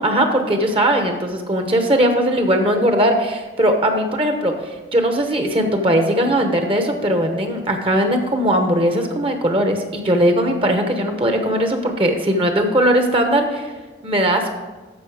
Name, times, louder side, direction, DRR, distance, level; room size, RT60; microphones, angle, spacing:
voice 1, 0.0-4.5 4.9-13.7 14.0-14.5, right 1 dB, 30° right, 5 dB, 1.0 m, -19 dB
13.5 x 5.5 x 4.9 m, 1.2 s
head